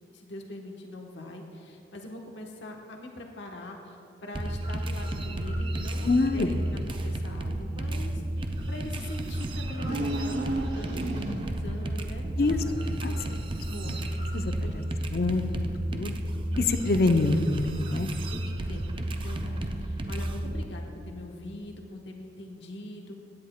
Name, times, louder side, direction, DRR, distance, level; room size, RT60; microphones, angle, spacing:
voice 1, 0.1-6.6 6.9-8.2 8.7-13.4 13.7-14.0 14.6-14.7 18.3-18.4 18.7-23.2, left 1 dB, 90° left, 1 dB, 1.1 m, -42 dB
sound 1, 4.3-20.6, right 1 dB, 30° right, 0.5 m, -32 dB
voice 2, 6.0-6.6 12.4-12.6 13.0-13.1 13.8-14.0 14.3-14.8 15.1-16.2 16.6-18.1, left 3 dB, 55° left, 8 dB, 0.6 m, -26 dB
sound 2, 9.8-11.7, right 1 dB, 80° right, 0.9 m, -32 dB
16.5 x 9.8 x 2.2 m, 2.5 s
head